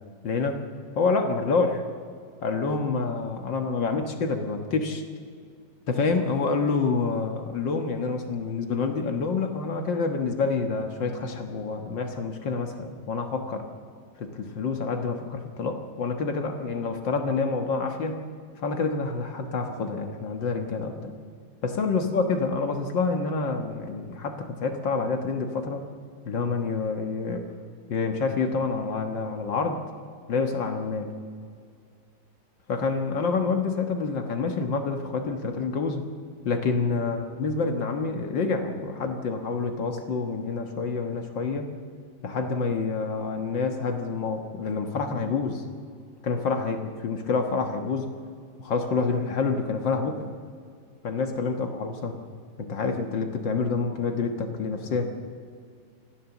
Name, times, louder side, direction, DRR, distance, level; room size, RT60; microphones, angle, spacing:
voice 1, 0.2-0.6 1.0-1.8 2.4-5.0 5.9-13.7 14.2-18.2 18.6-21.1 21.6-25.8 26.3-27.4 27.9-29.8 30.3-31.1 32.7-36.1 36.4-41.7 42.2-45.6 46.2-48.1 48.6-50.2 51.0-52.1 52.6-55.1, left 4 dB, 65° left, 5 dB, 2.0 m, -27 dB
25.0 x 15.5 x 7.1 m, 2.2 s
omnidirectional pair, 2.2 m